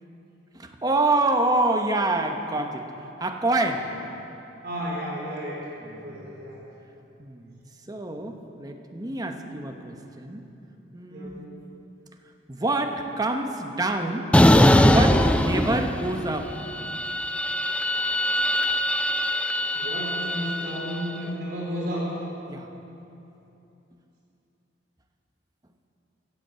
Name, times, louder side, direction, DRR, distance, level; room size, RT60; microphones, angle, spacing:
voice 1, 0.5-2.9 3.2-3.9 5.8-6.3 7.2-7.5 7.9-10.5 10.9-11.4 12.5-14.3 14.8-16.5 22.5-22.7, right 2 dB, 20° right, 4 dB, 1.0 m, -27 dB
voice 2, 4.6-5.6 6.0-6.6 11.1-11.4 19.7-22.1, equal, 60° right, -5 dB, 4.3 m, -32 dB
sound 1, 14.3-16.3 16.6-20.9, left 1 dB, 5° left, 0.4 m, -21 dB
16.5 x 8.4 x 7.7 m, 2.9 s
head